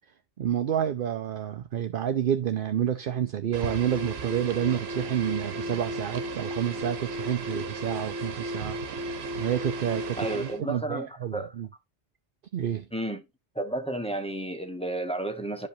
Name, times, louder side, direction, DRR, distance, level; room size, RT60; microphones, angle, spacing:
voice 1, 0.4-8.8 9.4-11.7 12.5-12.9, right 10 dB, 60° right, 0.8 m, -29 dB
sound 1, 3.5-10.6, right 2 dB, 85° right, 1.3 m, -34 dB
voice 2, 10.1-11.6 12.9-13.2 13.5-15.7, right 2 dB, 5° left, 1.2 m, -32 dB
12.0 x 5.1 x 2.7 m
omnidirectional pair, 1.0 m